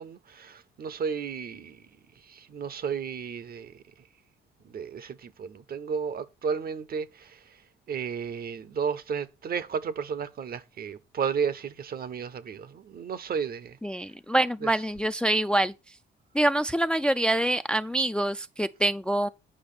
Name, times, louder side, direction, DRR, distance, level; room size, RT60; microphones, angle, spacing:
voice 1, 0.0-1.8 2.2-3.8 4.6-7.4 7.9-13.8 14.6-14.7, right 6 dB, 50° right, 0.7 m, -33 dB
voice 2, 13.8-15.7 16.3-19.3, right 1 dB, 5° left, 0.3 m, -25 dB
8.8 x 5.0 x 4.9 m
cardioid pair, 90°, 20 cm